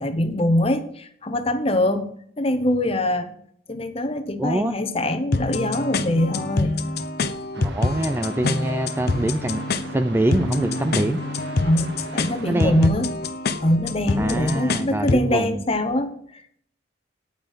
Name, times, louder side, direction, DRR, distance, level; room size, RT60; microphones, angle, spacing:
voice 1, 0.0-2.1 2.4-3.3 3.7-6.8 11.6-13.2 13.6-16.6, left 1 dB, 30° left, 9 dB, 1.0 m, -23 dB
voice 2, 4.4-4.7 7.6-9.6 9.9-11.2 12.5-12.9 14.2-15.6, right 1 dB, 10° right, 9 dB, 0.4 m, -24 dB
sound 1, 5.3-15.3, left 3 dB, 50° left, 0.7 m, -26 dB
sound 2, 7.5-12.9, right 2 dB, 55° right, 1.3 m, -40 dB
9.2 x 8.8 x 5.6 m, 0.65 s
head